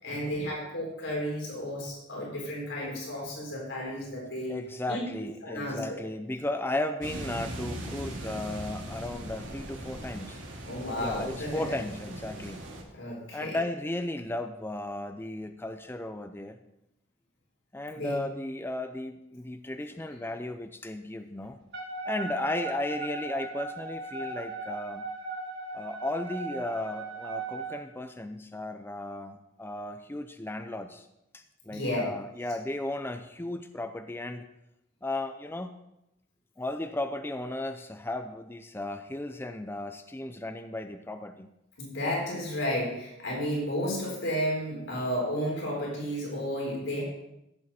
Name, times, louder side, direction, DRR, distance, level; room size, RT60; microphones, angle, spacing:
voice 1, 0.0-4.5 4.9-5.0 5.4-6.0 10.7-11.7 12.9-13.6 17.9-18.2 31.7-32.0 41.8-47.0, equal, 80° left, -3 dB, 4.2 m, -32 dB
voice 2, 4.5-10.4 11.0-12.6 13.3-16.6 17.7-21.6 22.1-25.1 25.7-31.1 31.3-34.5 35.0-35.8 36.6-41.5, left 1 dB, 10° left, 7 dB, 0.5 m, -35 dB
sound 1, 7.0-12.8, right 1 dB, 90° right, 2.5 m, -40 dB
Wind instrument woodwind instrument, 21.7-27.8, right 3 dB, 60° right, 2.5 m, -38 dB
15.0 x 7.5 x 4.2 m, 0.86 s
head